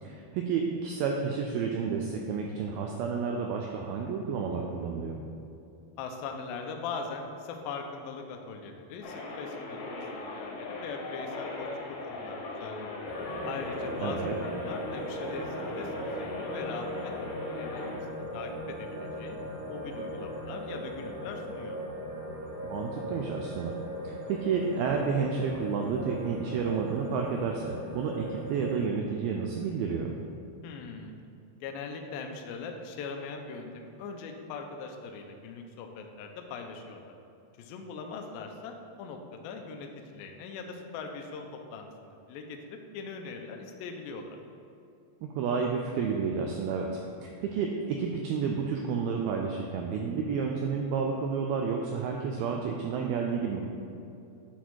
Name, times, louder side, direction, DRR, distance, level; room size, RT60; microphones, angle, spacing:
voice 1, 0.0-5.2 14.0-14.4 22.6-23.7 24.0-30.2 45.2-53.7, right 5 dB, 85° right, 1 dB, 2.2 m, -31 dB
voice 2, 6.0-11.7 12.1-13.1 13.5-17.1 17.6-19.4 19.7-21.8 30.6-31.1 31.6-37.1 37.6-44.3, left 4 dB, 85° left, 4 dB, 2.1 m, -41 dB
sound 1, 9.0-18.0, left 2 dB, 70° left, 2.1 m, -39 dB
sound 2, 13.1-28.9, equal, 70° right, 3.5 m, -38 dB
10.5 x 4.1 x 4.6 m, 2.6 s
omnidirectional pair, 4.9 m